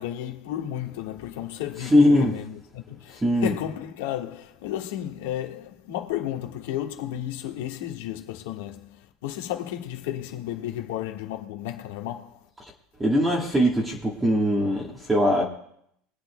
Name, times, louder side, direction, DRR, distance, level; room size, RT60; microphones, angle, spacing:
voice 1, 0.0-12.5, left 12 dB, 75° left, 1.5 m, -33 dB
voice 2, 1.8-2.3 3.2-3.5 13.0-15.4, equal, 10° right, 1.4 m, -21 dB
23.0 x 8.8 x 2.2 m
supercardioid pair, 155°, 0 cm